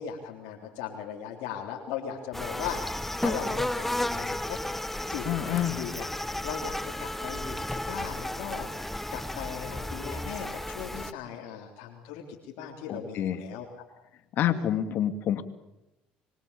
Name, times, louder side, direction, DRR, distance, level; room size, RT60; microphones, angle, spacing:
voice 1, 0.0-6.1 6.4-13.7 14.5-14.7, left 8 dB, 80° left, -1 dB, 3.8 m, -38 dB
sound 1, 2.3-11.1, left 1 dB, 5° left, 1.3 m, -33 dB
voice 2, 5.2-5.8 12.9-13.4 14.4-15.4, left 10 dB, 65° left, 10 dB, 2.5 m, -28 dB
25.0 x 23.0 x 8.6 m, 0.90 s
supercardioid pair, 85°, 4 cm